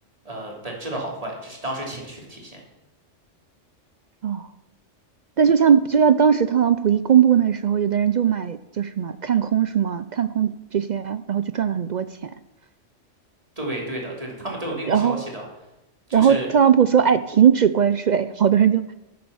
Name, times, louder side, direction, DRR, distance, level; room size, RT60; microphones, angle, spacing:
voice 1, 0.2-2.6 13.6-15.4 16.1-16.5, right 1 dB, 30° right, -1 dB, 3.3 m, -32 dB
voice 2, 5.4-12.3 14.9-15.2 16.1-18.9, right 8 dB, 60° right, 13 dB, 0.5 m, -19 dB
12.0 x 8.6 x 7.1 m, 0.92 s
omnidirectional pair, 1.3 m